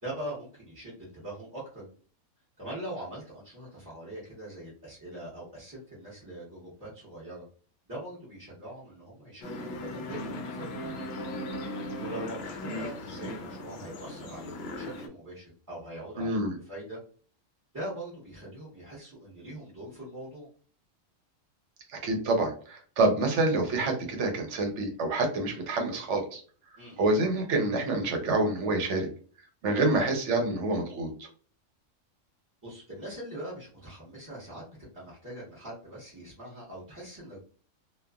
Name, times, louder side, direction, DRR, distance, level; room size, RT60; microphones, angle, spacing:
voice 1, 0.0-1.9 2.6-7.4 7.9-11.0 12.0-17.0 17.7-20.5 26.8-27.1 32.6-37.4, right 1 dB, 15° right, -10 dB, 1.0 m, -42 dB
sound 1, 9.4-15.1, left 1 dB, 65° left, 0.7 m, -37 dB
voice 2, 16.2-16.6 21.9-26.4 27.0-29.1 29.6-31.3, right 2 dB, 70° right, 3 dB, 1.0 m, -27 dB
3.0 x 2.3 x 2.3 m, 0.42 s
omnidirectional pair, 1.3 m